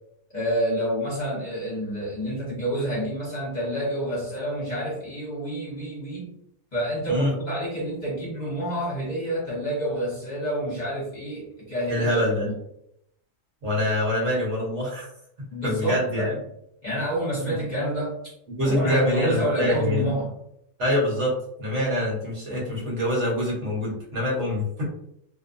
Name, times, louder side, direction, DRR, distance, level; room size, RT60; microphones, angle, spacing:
voice 1, 0.3-6.3 6.7-12.5 15.5-16.4 16.8-18.3 18.6-20.3, right 1 dB, 35° left, -6 dB, 1.0 m, -28 dB
voice 2, 11.9-12.5 13.6-15.1 15.6-16.3 17.4-17.6 18.6-20.1 20.8-24.8, left 1 dB, 65° right, -4 dB, 1.3 m, -25 dB
2.6 x 2.2 x 2.5 m, 0.76 s
omnidirectional pair, 1.4 m